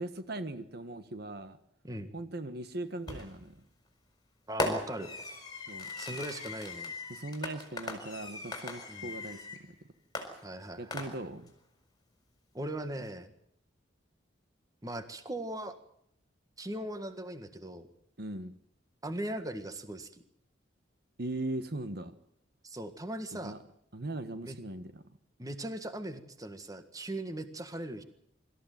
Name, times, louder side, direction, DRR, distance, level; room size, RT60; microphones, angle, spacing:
voice 1, 0.0-1.6 2.1-3.5 5.7-5.9 7.1-9.7 10.3-10.4 10.8-11.5 18.2-18.5 21.2-22.1 23.3-23.6 23.9-25.0, right 2 dB, 55° right, 10 dB, 1.4 m, -39 dB
voice 2, 1.8-2.1 4.5-5.1 6.0-6.9 8.9-9.1 10.4-11.0 12.5-13.3 14.8-15.8 16.6-17.9 19.0-20.2 22.6-23.6 24.4-24.6 25.4-28.0, right 1 dB, 20° right, 9 dB, 1.7 m, -39 dB
Fireworks, 3.1-3.5 4.6-9.6 10.1-11.5, left 2 dB, 20° left, 4.6 m, -38 dB
25.0 x 14.5 x 9.3 m, 0.74 s
head